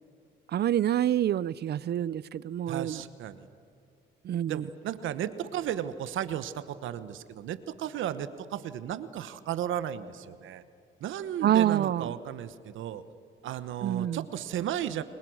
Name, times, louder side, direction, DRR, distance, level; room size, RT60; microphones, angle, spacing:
voice 1, 0.5-3.0 4.2-4.6 11.4-12.1 13.8-14.2, right 11 dB, 55° right, 21 dB, 0.6 m, -27 dB
voice 2, 2.7-3.5 4.5-10.6 11.0-13.0 13.4-15.0, right 10 dB, 80° right, 13 dB, 1.1 m, -34 dB
30.0 x 21.5 x 6.4 m, 2.4 s
cardioid pair, 90°, 20 cm